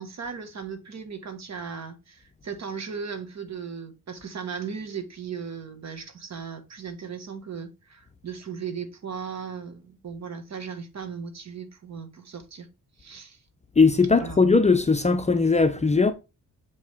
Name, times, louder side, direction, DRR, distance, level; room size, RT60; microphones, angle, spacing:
voice 1, 0.0-12.7 13.0-13.4 14.1-14.4, right 6 dB, 50° right, 1.6 m, -37 dB
voice 2, 13.8-16.1, left 4 dB, 20° left, 0.6 m, -19 dB
7.6 x 5.4 x 3.5 m
cardioid pair, 120°, 35 cm